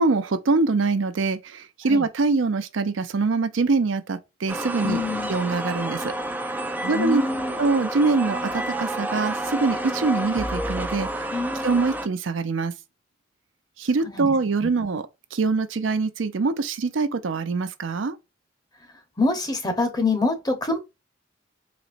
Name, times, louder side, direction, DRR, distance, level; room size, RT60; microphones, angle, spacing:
voice 1, 0.0-5.0 5.3-6.1 6.9-7.2 7.6-11.3 11.6-12.7 13.8-15.0 15.3-18.2, right 3 dB, 75° right, 0.5 m, -24 dB
sound 1, 4.5-12.1, right 1 dB, 10° right, 0.4 m, -29 dB
voice 2, 4.8-5.3 6.8-7.5 11.3-11.7 14.0-14.3 19.2-20.8, left 3 dB, 20° left, 0.9 m, -25 dB
4.2 x 3.0 x 2.5 m
head